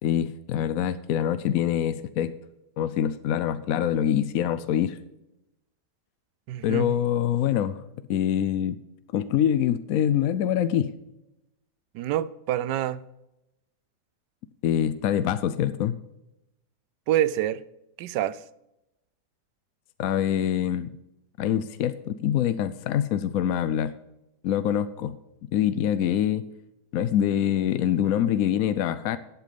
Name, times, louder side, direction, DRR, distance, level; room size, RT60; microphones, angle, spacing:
voice 1, 0.0-2.3 2.8-5.0 6.6-7.8 8.1-8.8 9.1-10.9 14.6-16.0 20.0-20.9 21.4-23.9 24.4-25.2 25.4-26.4 26.9-29.2, left 10 dB, 70° left, 0.9 m, -25 dB
voice 2, 6.5-6.9 11.9-13.0 17.1-17.6 18.0-18.4, right 12 dB, 90° right, 1.2 m, -26 dB
12.0 x 8.3 x 5.2 m
omnidirectional pair, 1.8 m